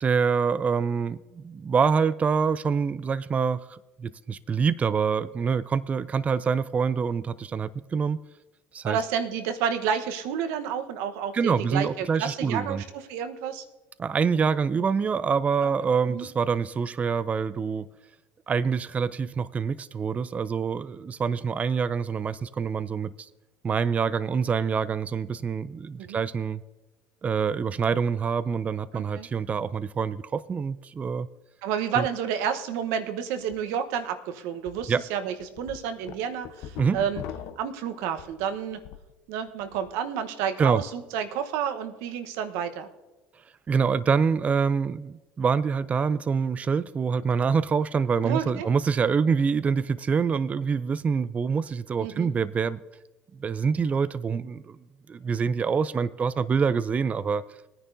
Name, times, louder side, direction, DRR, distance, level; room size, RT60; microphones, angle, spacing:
voice 1, 0.0-8.2 8.7-9.0 11.3-12.8 14.0-17.9 18.5-23.3 23.6-26.6 27.2-31.3 31.9-32.0 34.9-35.0 36.8-37.0 40.6-40.8 43.7-52.8 53.4-54.8 55.1-57.4, right 6 dB, 30° right, 0.4 m, -26 dB
voice 2, 8.8-13.6 15.6-15.7 16.1-16.3 26.0-26.2 28.9-29.3 31.6-37.2 37.6-38.8 39.3-42.9 48.2-48.7 52.0-52.3, right 8 dB, 70° right, 1.1 m, -30 dB
sound 1, 33.4-33.6 34.0-34.1 34.7-34.9 35.3-39.1 39.5-39.9, left 9 dB, 65° left, 0.9 m, -41 dB
20.5 x 9.9 x 2.7 m
hypercardioid pair, 75°, 5 cm